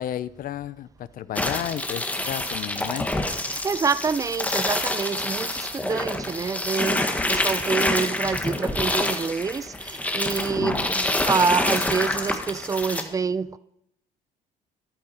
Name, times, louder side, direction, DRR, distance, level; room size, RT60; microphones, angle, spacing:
voice 1, 0.0-3.1 10.6-10.8, left 11 dB, 55° left, 0.7 m, -32 dB
sound 1, 1.4-13.0, left 1 dB, 10° left, 1.5 m, -27 dB
voice 2, 3.6-5.5 5.8-7.0 7.3-9.7 10.1-13.6, right 5 dB, 20° right, 0.5 m, -26 dB
13.5 x 12.0 x 4.4 m
cardioid pair, 110°, 17 cm